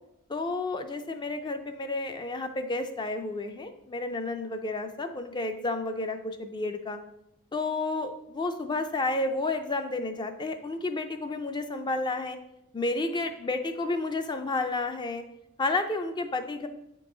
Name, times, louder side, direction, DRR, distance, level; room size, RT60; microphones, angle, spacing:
voice 1, 0.3-7.0 7.5-12.4 12.7-15.2 15.6-16.7, left 2 dB, 20° left, 8 dB, 0.3 m, -31 dB
7.9 x 3.8 x 3.8 m, 0.83 s
head